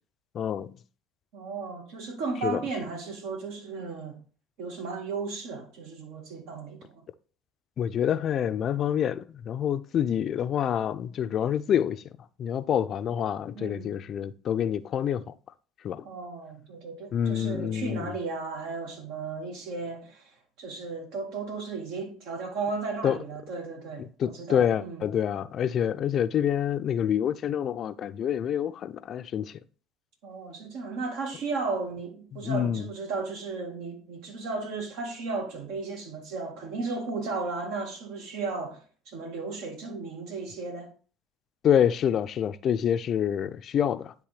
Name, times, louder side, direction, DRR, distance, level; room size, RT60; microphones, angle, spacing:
voice 1, 0.3-0.8 2.4-2.6 7.8-12.1 12.4-15.3 15.8-16.1 17.1-18.1 23.0-23.2 24.0-29.6 32.3-32.9 41.6-44.1, left 9 dB, 50° left, 0.4 m, -27 dB
voice 2, 1.3-4.2 4.6-7.0 13.6-13.9 16.0-25.1 25.8-25.9 30.2-40.9, right 4 dB, 75° right, 1.7 m, -35 dB
9.8 x 3.4 x 3.3 m
supercardioid pair, 100°, 0 cm